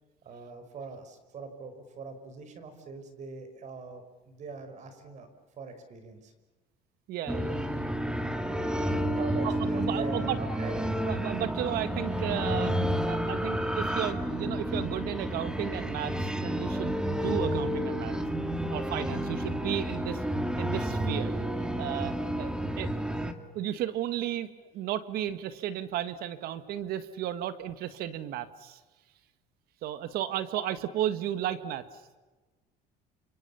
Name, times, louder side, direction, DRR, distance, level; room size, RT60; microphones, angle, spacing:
voice 1, 0.3-5.3 5.6-6.3 9.0-10.9, right 4 dB, 45° right, 9 dB, 5.2 m, -42 dB
voice 2, 7.1-7.6 8.0-8.2 8.5-8.6 9.4-10.4 11.1-12.8 13.1-18.1 18.7-20.2 20.6-21.3 21.8-22.9 23.5-28.8 29.8-31.9, right 11 dB, 70° right, 12 dB, 1.9 m, -34 dB
sound 1, 7.3-23.3, equal, 5° right, 2.1 m, -30 dB
29.5 x 27.5 x 7.1 m, 1.2 s
cardioid pair, 130°, 17 cm